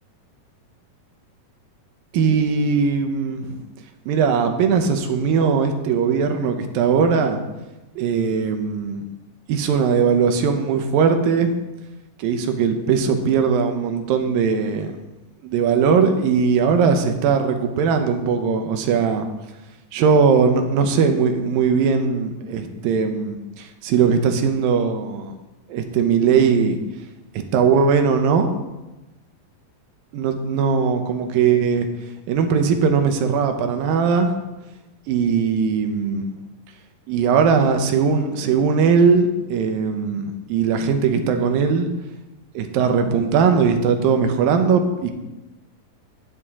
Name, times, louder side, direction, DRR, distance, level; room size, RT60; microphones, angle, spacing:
voice 1, 2.1-3.6 4.1-7.4 8.0-9.1 9.5-11.6 12.2-14.9 15.4-19.3 19.9-25.3 25.7-26.8 27.5-28.5 30.1-31.9 32.3-34.3 35.1-36.3 37.1-41.9 42.5-45.1, right 6 dB, 85° right, 6 dB, 2.6 m, -19 dB
12.5 x 9.1 x 3.7 m, 1.1 s
omnidirectional pair, 4.0 m